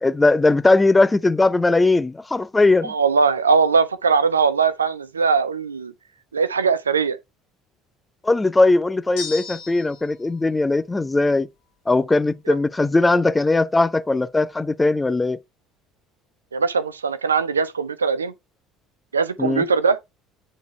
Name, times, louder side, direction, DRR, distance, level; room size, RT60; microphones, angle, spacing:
voice 1, 0.0-2.9 8.2-11.5 11.9-15.4 19.4-19.6, left 2 dB, 15° left, 0.5 m, -19 dB
voice 2, 2.8-5.9 6.3-7.2 16.5-18.3 19.1-20.0, right 5 dB, 80° right, 0.5 m, -20 dB
sound 1, 9.2-10.1, left 6 dB, 60° left, 1.7 m, -34 dB
8.6 x 4.1 x 3.2 m
figure-of-eight pair, 60°, 0 cm